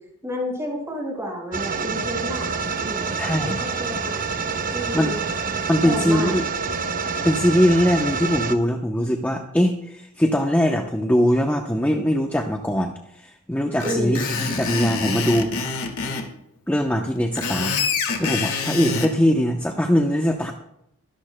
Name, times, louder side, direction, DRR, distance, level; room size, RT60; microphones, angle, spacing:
voice 1, 0.2-2.5 2.8-3.1 3.5-4.2 4.7-5.2 5.8-6.3 13.8-14.2, equal, 15° right, -2 dB, 5.3 m, -30 dB
sound 1, 1.5-8.5, right 5 dB, 40° right, 0.8 m, -27 dB
voice 2, 3.2-3.6 4.9-5.1 5.7-6.4 7.2-15.5 16.7-17.7 18.2-20.5, equal, 10° left, 2 dB, 0.8 m, -21 dB
Screech, 13.8-16.3 17.2-19.1, left 5 dB, 75° left, 2.0 m, -26 dB
24.0 x 11.5 x 2.2 m, 0.79 s
head